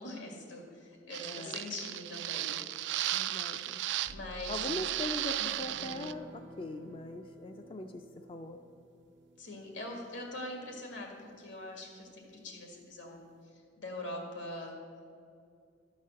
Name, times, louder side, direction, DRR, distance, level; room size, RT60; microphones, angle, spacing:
voice 1, 0.0-2.9 4.1-4.6 5.5-5.6 9.4-13.3 13.8-14.7, left 1 dB, 85° left, 1 dB, 1.9 m, -43 dB
sound 1, 1.1-4.1 4.4-6.1, right 13 dB, 70° right, 0.3 m, -35 dB
voice 2, 1.2-1.7 3.1-3.8 4.5-8.6, left 2 dB, 30° left, 5 dB, 0.4 m, -41 dB
sound 2, 4.1-5.9, equal, 70° left, 1.1 m, -51 dB
sound 3, 5.7-12.5 12.8-12.9 13.2-13.4, equal, 90° right, 0.8 m, -55 dB
12.0 x 4.1 x 7.5 m, 2.3 s
head